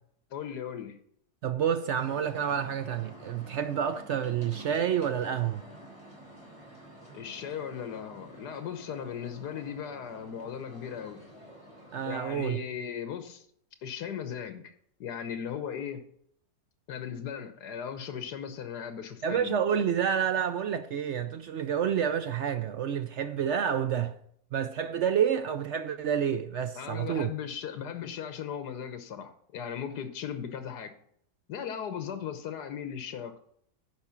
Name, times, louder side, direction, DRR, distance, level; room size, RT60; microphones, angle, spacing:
voice 1, 0.3-1.0 7.1-11.2 12.0-13.5 13.8-14.7 15.0-16.0 16.9-19.6 26.8-30.9 31.5-33.3, left 8 dB, 80° left, 1.6 m, -37 dB
voice 2, 1.4-5.6 11.9-12.6 19.2-24.2 24.5-27.3, right 8 dB, 65° right, 0.7 m, -29 dB
sound 1, 1.9-12.1, equal, 20° left, 3.4 m, -49 dB
10.5 x 5.1 x 7.2 m
omnidirectional pair, 1.7 m